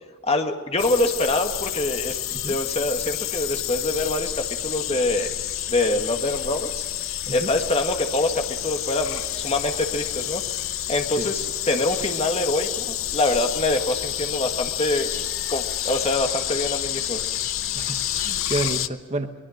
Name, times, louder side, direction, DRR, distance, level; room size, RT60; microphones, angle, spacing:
voice 1, 0.2-2.2 2.5-4.3 4.6-5.3 5.7-6.9 7.3-10.4 10.9-15.1 15.5-17.2, left 2 dB, 30° left, 5 dB, 1.9 m, -25 dB
sound 1, 0.8-18.9, left 12 dB, 60° left, 0.7 m, -29 dB
voice 2, 17.7-19.3, right 2 dB, 30° right, 7 dB, 1.2 m, -30 dB
24.0 x 21.0 x 6.6 m, 1.5 s
head